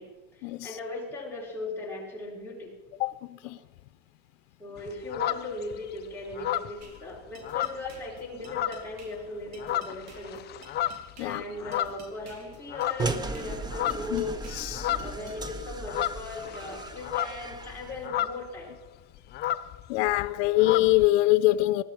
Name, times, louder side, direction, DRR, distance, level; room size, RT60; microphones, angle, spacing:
voice 1, 0.0-2.7 3.4-3.5 4.6-10.6 11.2-14.6 15.0-18.8, left 2 dB, 5° left, 4.4 m, -38 dB
sound 1, 4.8-5.9 6.3-8.2 8.5-9.0 9.4-12.4 12.7-13.3 13.5-18.6 18.9-19.0 19.2-21.1, left 12 dB, 30° left, 0.5 m, -32 dB
sound 2, 6.8-15.4, right 3 dB, 45° right, 3.1 m, -53 dB
sound 3, 13.0-18.1, right 3 dB, 10° right, 0.6 m, -36 dB
voice 2, 14.6-14.9 19.9-21.8, left 17 dB, 90° left, 0.6 m, -23 dB
20.5 x 13.0 x 4.6 m
cardioid pair, 155°, 36 cm